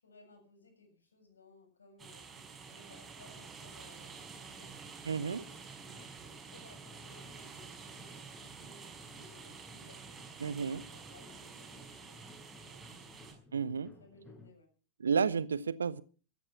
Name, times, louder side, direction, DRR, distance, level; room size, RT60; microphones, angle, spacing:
voice 1, 0.0-5.4 5.7-6.1 6.4-13.2 13.8-14.7, left 3 dB, 75° left, 7.6 m, -61 dB
sound 1, 2.0-13.3, right 5 dB, 20° right, 5.6 m, -50 dB
sound 2, 4.1-14.5, left 2 dB, 10° left, 6.8 m, -58 dB
voice 2, 5.1-5.4 10.4-10.8 13.5-13.9 15.0-16.0, right 6 dB, 70° right, 0.8 m, -31 dB
14.5 x 13.5 x 5.9 m
figure-of-eight pair, 90°, 0 cm